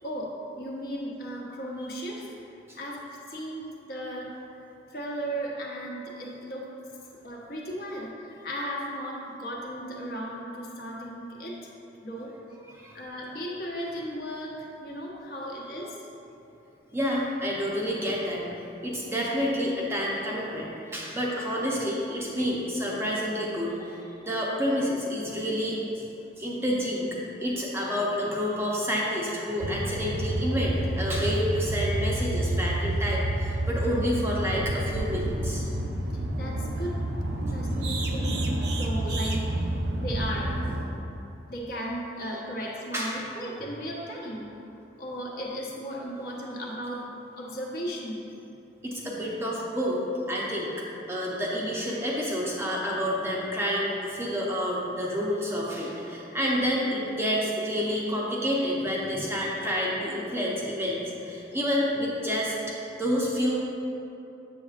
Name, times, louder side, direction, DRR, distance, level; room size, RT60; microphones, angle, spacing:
voice 1, 0.0-2.3 2.7-4.3 4.9-6.7 7.2-11.6 12.0-12.3 12.9-16.0 36.3-37.0 37.5-39.5 40.0-40.5 41.5-44.5 45.0-47.0 47.3-48.3, equal, 50° left, -3 dB, 1.0 m, -36 dB
voice 2, 12.7-13.0 16.9-18.4 18.8-25.8 26.4-27.1 27.4-35.7 42.9-43.2 48.8-50.0 50.3-50.7 51.1-63.6, equal, 15° right, -4 dB, 0.6 m, -29 dB
sound 1, 29.6-40.8, right 1 dB, 55° right, 0.5 m, -29 dB
7.3 x 6.9 x 2.4 m, 2.9 s
head